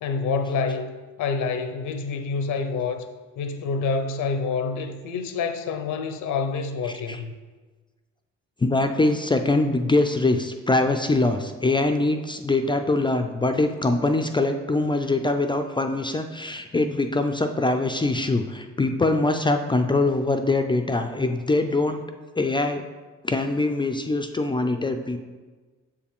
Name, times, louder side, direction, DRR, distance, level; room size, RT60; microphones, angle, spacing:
voice 1, 0.0-3.1 3.4-7.3, left 4 dB, 80° left, 7 dB, 0.7 m, -27 dB
voice 2, 8.6-22.0 22.4-22.8 23.2-25.2, left 2 dB, 15° left, 6 dB, 0.4 m, -23 dB
6.9 x 4.8 x 3.5 m, 1.3 s
cardioid pair, 90°, 30 cm